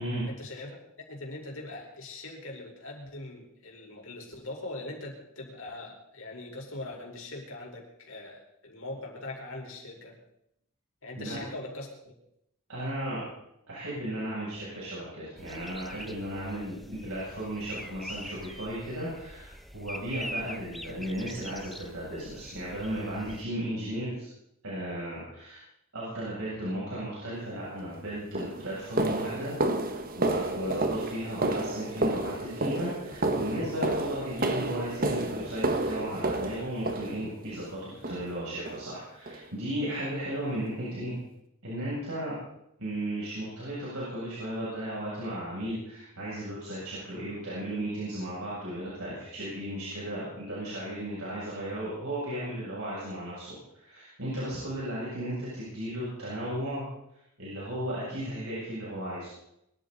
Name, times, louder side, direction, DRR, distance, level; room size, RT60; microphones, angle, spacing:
voice 1, 0.3-10.1 11.0-11.9 16.4-16.6, left 2 dB, 65° left, 0 dB, 4.8 m, -41 dB
voice 2, 12.7-13.2 13.7-24.3 24.6-25.6 25.9-29.5 29.8-41.2 41.6-42.3 42.8-56.9 57.4-59.3, right 1 dB, 75° right, -8 dB, 7.8 m, -35 dB
sound 1, 15.4-23.4, equal, ahead, 0.8 m, -44 dB
sound 2, 27.7-27.8 28.4-37.6 38.0-38.4 38.7-38.9 39.3-39.4 39.9-40.0 40.5-40.6, right 2 dB, 40° right, 1.4 m, -31 dB
23.5 x 14.0 x 4.2 m, 0.79 s
head